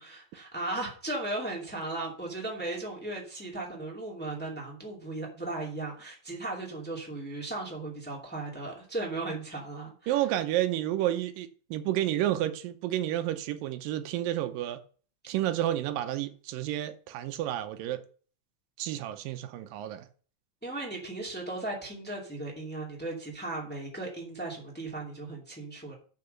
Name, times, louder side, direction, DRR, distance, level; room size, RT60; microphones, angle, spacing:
voice 1, 0.0-10.1 20.6-25.9, right 2 dB, 5° left, 1.9 m, -36 dB
voice 2, 10.1-14.8 15.3-18.0 18.8-20.1, right 13 dB, 85° right, 2.5 m, -30 dB
6.9 x 5.9 x 6.6 m
omnidirectional pair, 3.9 m